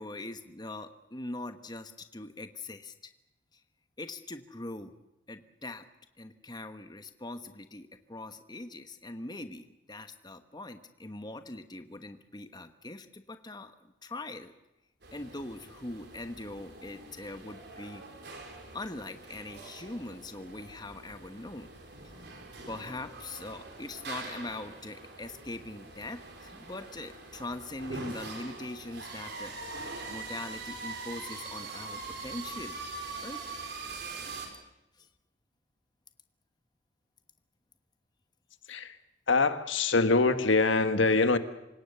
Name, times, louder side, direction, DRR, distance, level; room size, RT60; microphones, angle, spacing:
voice 1, 0.0-3.1 3.5-3.6 4.0-4.9 5.3-5.9 6.2-14.5 15.1-18.0 18.7-21.7 22.7-29.5 30.1-32.8 33.2-33.4 35.0-35.1, left 2 dB, 20° left, 8 dB, 1.2 m, -42 dB
sound 1, 15.0-34.5, right 3 dB, 60° right, 4.7 m, -43 dB
voice 2, 39.3-41.4, left 3 dB, 85° left, 10 dB, 1.5 m, -24 dB
27.5 x 17.5 x 6.8 m, 0.93 s
head